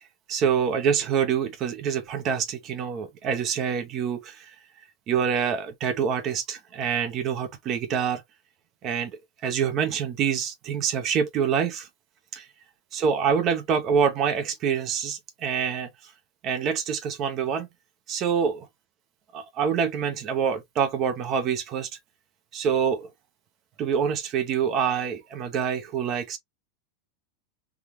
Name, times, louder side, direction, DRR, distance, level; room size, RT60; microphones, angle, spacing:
voice 1, 0.3-4.5 5.1-8.2 8.8-9.1 9.4-11.9 12.3-12.4 12.9-15.9 16.4-17.7 18.1-18.7 19.3-21.9 22.5-23.1 23.8-26.4, right 7 dB, 30° right, 0.8 m, -26 dB
3.6 x 2.4 x 2.9 m
supercardioid pair, 160°, 0 cm